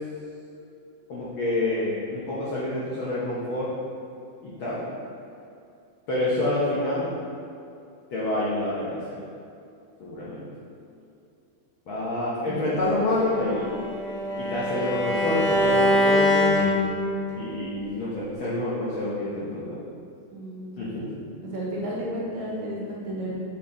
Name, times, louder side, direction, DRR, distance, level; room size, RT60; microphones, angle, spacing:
voice 1, 1.1-3.7 4.4-4.8 6.1-7.1 8.1-9.2 10.0-10.4 11.9-13.7 14.4-16.5 17.3-19.8 20.8-21.0, left 2 dB, 75° left, -7 dB, 1.1 m, -27 dB
Bowed string instrument, 13.2-17.3, left 1 dB, 40° right, 1.1 m, -23 dB
voice 2, 20.3-21.1 21.4-23.3, right 1 dB, 70° right, -5 dB, 2.2 m, -33 dB
7.4 x 4.4 x 3.8 m, 2.5 s
omnidirectional pair, 3.5 m